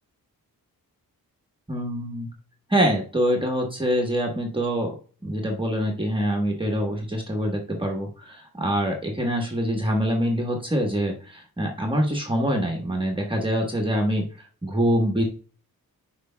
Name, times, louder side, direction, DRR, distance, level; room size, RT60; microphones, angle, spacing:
voice 1, 1.7-2.3 2.7-4.9 5.2-14.3 14.6-15.2, equal, 15° right, 0 dB, 1.2 m, -25 dB
9.7 x 4.8 x 2.2 m, 0.39 s
wide cardioid pair, 160°, 36 cm